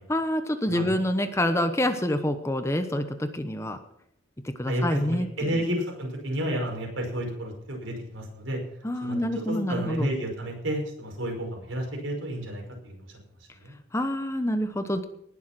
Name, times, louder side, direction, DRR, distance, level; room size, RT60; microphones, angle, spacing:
voice 1, 0.1-3.8 4.4-5.6 8.8-10.1 13.9-15.1, left 1 dB, 15° left, 8 dB, 0.9 m, -27 dB
voice 2, 4.7-8.6 9.0-13.2 13.6-13.8, right 1 dB, 80° right, 1 dB, 5.4 m, -31 dB
19.5 x 7.3 x 6.0 m, 0.75 s
head